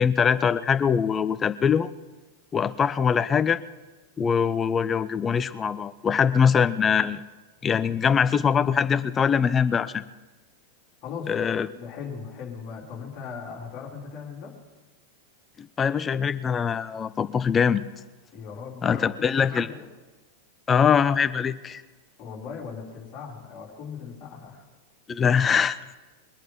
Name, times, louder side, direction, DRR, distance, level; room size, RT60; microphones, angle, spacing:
voice 1, 0.0-1.9 2.5-3.6 4.2-7.2 7.6-10.0 11.3-11.7 15.6-17.8 18.8-19.7 20.7-21.8 25.1-25.8, left 7 dB, 20° left, 14 dB, 0.6 m, -22 dB
voice 2, 11.0-11.4 11.7-14.5 18.3-19.9 22.2-24.6, left 6 dB, 35° left, -2 dB, 4.1 m, -38 dB
22.5 x 9.1 x 6.0 m, 1.2 s
figure-of-eight pair, 90°, 0 cm